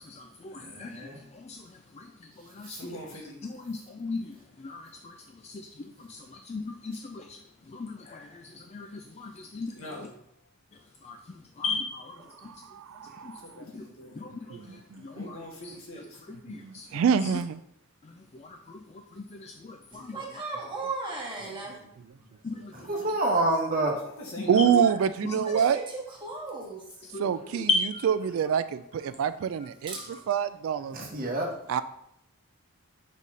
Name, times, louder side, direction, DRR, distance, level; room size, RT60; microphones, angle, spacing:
voice 1, 0.0-1.6 2.0-2.1 2.5-2.8 3.4-4.3 4.6-5.1 5.4-5.7 6.1-6.2 6.5-7.4 7.7-9.7 11.0-11.2 11.6-12.1 13.7-13.9 14.2-14.6 15.0-15.4 16.4-16.9 18.4-18.8 19.2-20.2 22.4-22.7 24.4-24.5 27.1-27.3 27.5-28.1 29.9-30.2, left 3 dB, 30° left, 5 dB, 0.3 m, -35 dB
voice 2, 0.6-1.2 22.7-24.0 30.9-31.5, right 2 dB, 40° right, 0 dB, 1.1 m, -28 dB
voice 3, 2.8-3.4 8.1-8.2 9.7-10.1 13.4-14.3 15.1-16.2 24.0-25.1, equal, 75° left, -2 dB, 1.8 m, -42 dB
voice 4, 12.4-13.5 14.5-15.3 16.5-17.6 24.5-25.8 27.2-27.7 28.0-31.0 31.7-31.8, right 7 dB, 65° right, 13 dB, 0.3 m, -26 dB
voice 5, 19.9-21.9 22.7-22.8 25.5-26.8 29.9-30.2, right 3 dB, 20° right, -3 dB, 1.5 m, -36 dB
5.3 x 4.1 x 4.8 m, 0.76 s
head